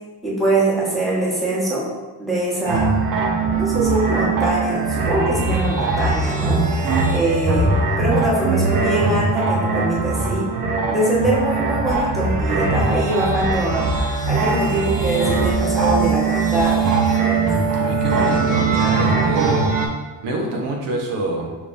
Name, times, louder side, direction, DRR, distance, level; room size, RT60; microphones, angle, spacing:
voice 1, 0.2-1.9 2.2-3.0 3.5-6.7 7.1-10.5 10.9-13.9 14.3-16.9, right 1 dB, ahead, -7 dB, 1.3 m, -22 dB
sound 1, 2.7-19.9, right 4 dB, 50° right, 0.8 m, -20 dB
voice 2, 17.7-19.7 20.2-21.6, right 2 dB, 80° right, 0 dB, 1.0 m, -25 dB
5.3 x 3.4 x 2.6 m, 1.2 s
cardioid pair, 125°, 42 cm